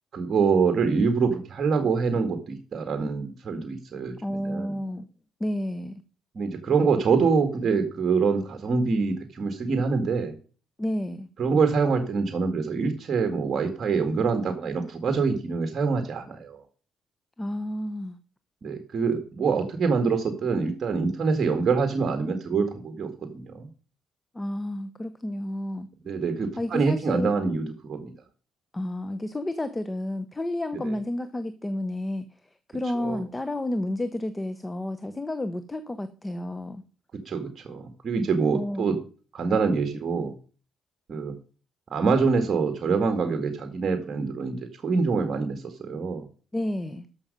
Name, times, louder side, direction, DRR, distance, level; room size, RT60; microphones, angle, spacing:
voice 1, 0.1-4.8 6.4-10.3 11.4-16.6 18.6-23.7 26.0-28.1 30.8-30.9 33.0-33.2 37.3-39.0 39.3-40.3 41.1-41.3 41.9-44.6 44.8-46.3, right 5 dB, 50° right, 6 dB, 1.9 m, -25 dB
voice 2, 4.2-5.1 5.4-6.0 10.8-11.3 17.4-18.2 24.3-25.9 26.6-27.3 28.7-32.2 32.7-36.8 38.5-38.9 46.5-47.1, left 1 dB, 15° left, 11 dB, 1.0 m, -31 dB
13.0 x 6.4 x 5.4 m, 0.38 s
cardioid pair, 90°, 0 cm